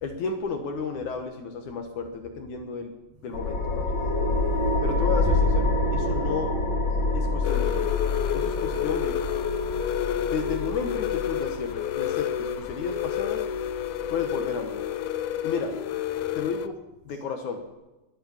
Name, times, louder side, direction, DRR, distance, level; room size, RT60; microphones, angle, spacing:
voice 1, 0.0-2.9 3.2-3.9 4.8-6.5 7.1-7.9 8.3-9.2 10.2-13.4 14.1-14.8 15.4-15.7 16.3-16.8 17.1-17.6, left 5 dB, 60° left, 6 dB, 2.2 m, -33 dB
sound 1, 3.3-14.4, left 2 dB, 45° left, 1.7 m, -27 dB
voice 2, 4.1-4.8 8.3-8.5 9.5-10.3 16.2-16.4 17.1-17.2, right 1 dB, 85° right, 4 dB, 4.6 m, -54 dB
Bass drum, 5.2-6.7, right 1 dB, 5° left, 1.7 m, -31 dB
sound 2, 7.4-16.7, left 10 dB, 75° left, 2.5 m, -29 dB
22.5 x 8.8 x 7.2 m, 1.1 s
omnidirectional pair, 4.7 m